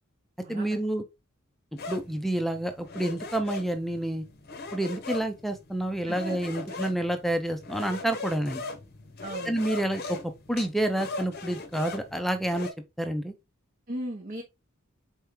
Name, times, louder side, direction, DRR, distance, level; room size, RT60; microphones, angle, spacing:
voice 1, 0.5-1.0 1.9-4.3 4.7-8.6 9.5-10.2 10.5-12.7 13.0-13.3, right 1 dB, ahead, 0.5 m, -29 dB
sound 1, 1.8-12.7, left 3 dB, 45° left, 0.8 m, -40 dB
voice 2, 6.1-6.4 6.7-6.8 9.2-9.6 13.9-14.4, right 1 dB, 40° right, 0.8 m, -37 dB
4.3 x 3.6 x 3.0 m
head